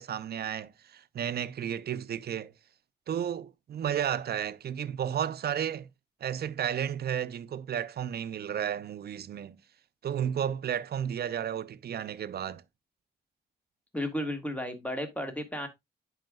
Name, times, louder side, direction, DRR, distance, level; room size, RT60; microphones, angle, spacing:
voice 1, 0.0-2.5 3.1-5.9 6.2-9.6 10.0-12.6, right 9 dB, 70° right, 0.5 m, -33 dB
voice 2, 13.9-15.7, left 1 dB, 10° left, 1.5 m, -33 dB
10.5 x 4.9 x 2.3 m
cardioid pair, 85°, 17 cm